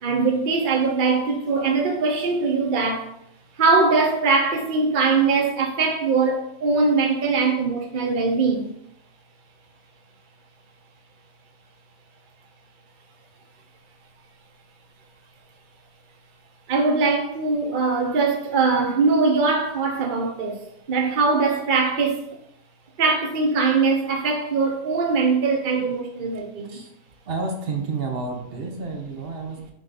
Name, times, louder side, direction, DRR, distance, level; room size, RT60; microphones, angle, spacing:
voice 1, 0.0-3.1 3.6-8.7 16.7-20.6 20.9-22.2 23.0-26.8, right 4 dB, 65° right, 0.5 m, -21 dB
voice 2, 27.3-29.7, right 4 dB, 40° right, 1.0 m, -30 dB
6.2 x 3.8 x 4.1 m
omnidirectional pair, 1.8 m